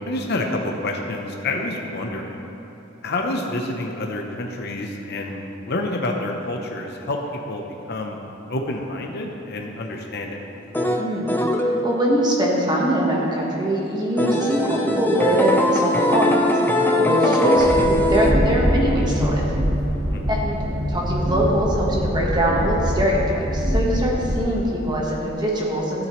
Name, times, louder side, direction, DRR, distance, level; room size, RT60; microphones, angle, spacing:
voice 1, 0.0-2.4 3.0-8.2 8.5-10.4 20.1-20.4, left 2 dB, 55° left, 1 dB, 0.8 m, -28 dB
sound 1, 10.7-12.3 14.2-18.3, left 1 dB, 10° left, 0.7 m, -20 dB
voice 2, 11.0-11.3 11.8-19.4 20.3-20.6 20.9-26.1, equal, 20° right, -3 dB, 1.4 m, -22 dB
Train, 17.6-24.4, equal, 60° right, 2.5 m, -23 dB
13.5 x 9.0 x 3.2 m, 3.0 s
head